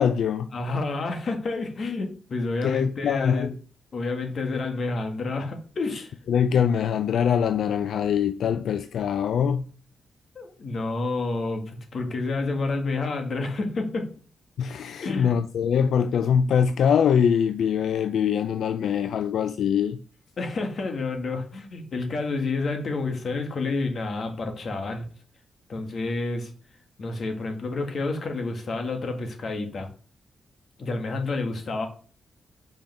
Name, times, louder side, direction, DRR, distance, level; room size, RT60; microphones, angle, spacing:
voice 1, 0.0-0.5 2.6-3.5 6.3-9.7 14.6-20.0, left 8 dB, 85° left, 0.4 m, -23 dB
voice 2, 0.5-3.5 3.9-6.1 10.3-14.1 15.0-15.3 20.4-25.1 25.7-26.5 27.0-29.9 30.8-31.9, left 3 dB, 50° left, 1.6 m, -29 dB
5.5 x 5.2 x 5.9 m
wide cardioid pair, 130°, 0 cm